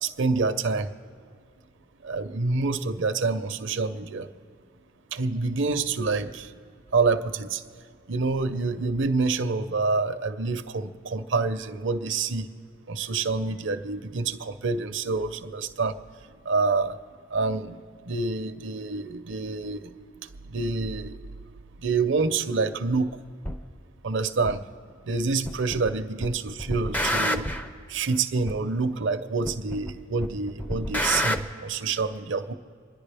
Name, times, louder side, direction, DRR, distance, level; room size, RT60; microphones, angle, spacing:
voice 1, 0.0-0.9 2.0-4.3 5.1-6.5 6.9-7.6 8.1-12.5 12.9-15.9 16.5-17.0 17.3-17.8 18.1-19.9 20.5-21.2 21.8-23.1 24.0-24.6 25.1-27.5 27.9-32.5, right 4 dB, 60° right, 10 dB, 0.6 m, -27 dB
sound 1, 23.4-23.6 24.5-24.6 25.5-25.9 26.2-27.7 28.5-28.6 29.5-29.9 30.2-31.4, equal, 10° left, 0.5 m, -28 dB
27.5 x 10.5 x 3.4 m, 2.2 s
head